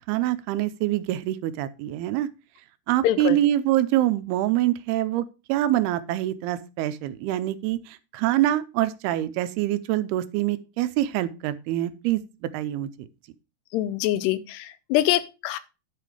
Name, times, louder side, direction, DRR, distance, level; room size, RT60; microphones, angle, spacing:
voice 1, 0.1-2.3 2.9-5.2 5.5-12.2 12.5-12.9, right 13 dB, 80° right, 14 dB, 2.6 m, -25 dB
voice 2, 3.0-3.4 13.7-15.6, left 14 dB, 90° left, 15 dB, 2.9 m, -24 dB
11.0 x 5.6 x 4.9 m, 0.30 s
omnidirectional pair, 4.7 m